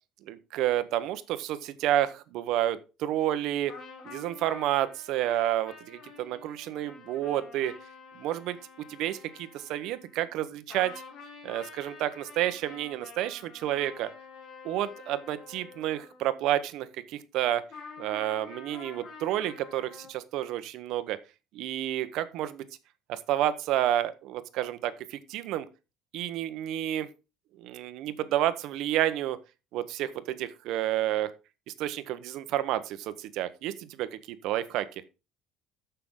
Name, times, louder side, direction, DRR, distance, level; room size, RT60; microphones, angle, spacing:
voice 1, 0.3-3.8 4.0-7.7 8.2-8.6 8.9-10.9 11.4-14.1 14.6-17.6 18.0-21.2 21.5-22.6 23.1-25.7 26.1-27.1 27.6-29.4 29.7-31.3 31.8-34.9, right 12 dB, 60° right, 0.9 m, -30 dB
sound 1, 3.7-10.4 10.7-16.6 17.7-20.1, left 4 dB, 40° left, 3.4 m, -48 dB
13.5 x 5.7 x 3.8 m
cardioid pair, 170°, 0 cm